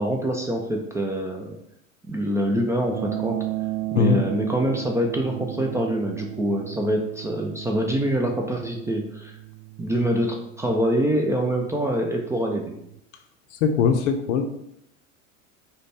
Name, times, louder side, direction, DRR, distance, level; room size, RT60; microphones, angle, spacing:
voice 1, 0.0-1.6 2.1-3.4 3.9-9.3 9.8-12.7, equal, 10° right, 1 dB, 0.4 m, -25 dB
sound 1, 2.9-13.0, right 17 dB, 75° right, 0.5 m, -35 dB
voice 2, 13.5-14.5, left 6 dB, 65° left, 6 dB, 0.6 m, -21 dB
5.0 x 2.3 x 4.2 m, 0.77 s
figure-of-eight pair, 80°, 40 cm